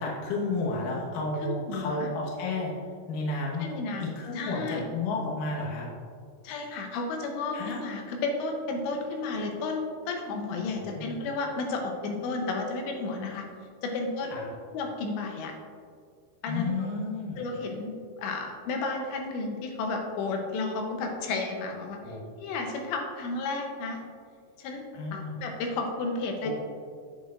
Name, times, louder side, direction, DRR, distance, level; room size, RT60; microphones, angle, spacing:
voice 1, 0.0-2.7 3.1-3.6 4.2-5.9 7.5-7.8 10.8-11.1 14.3-14.5 16.5-17.4 22.0-22.3 24.9-25.3 26.4-26.5, left 3 dB, 60° left, -3 dB, 2.6 m, -32 dB
voice 2, 1.4-2.1 3.6-4.9 6.4-13.4 13.8-14.3 14.7-15.5 16.4-16.9 17.4-17.9 18.2-24.0 24.6-24.8 25.1-26.5, left 3 dB, 90° left, 2 dB, 3.2 m, -32 dB
10.5 x 8.2 x 2.5 m, 2.1 s
omnidirectional pair, 4.9 m